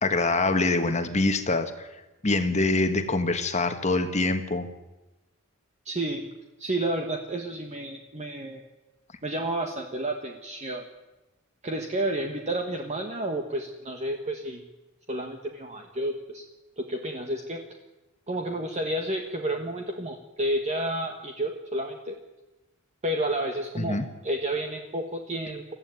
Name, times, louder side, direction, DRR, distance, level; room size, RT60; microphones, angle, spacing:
voice 1, 0.0-1.9 2.2-4.7 23.8-24.1, left 2 dB, 30° left, 7 dB, 1.4 m, -25 dB
voice 2, 5.8-6.2 6.6-8.6 9.2-10.8 11.6-14.6 15.1-16.4 16.8-17.6 18.3-22.1 23.0-25.7, right 1 dB, 30° right, 3 dB, 1.5 m, -31 dB
21.0 x 14.5 x 9.4 m, 1.1 s
head